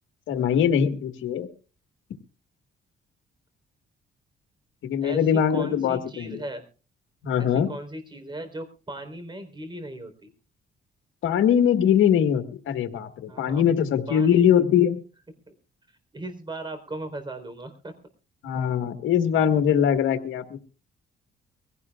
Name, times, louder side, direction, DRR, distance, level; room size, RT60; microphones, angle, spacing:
voice 1, 0.3-1.5 4.8-6.4 7.2-7.7 11.2-15.0 18.4-20.6, left 8 dB, 80° left, 7 dB, 1.7 m, -22 dB
voice 2, 5.0-6.6 7.4-10.3 13.3-13.6 14.1-14.5 15.5-15.6 16.1-17.9, right 1 dB, 25° right, 9 dB, 4.1 m, -37 dB
23.5 x 16.5 x 2.4 m, 0.36 s
cardioid pair, 90°, 20 cm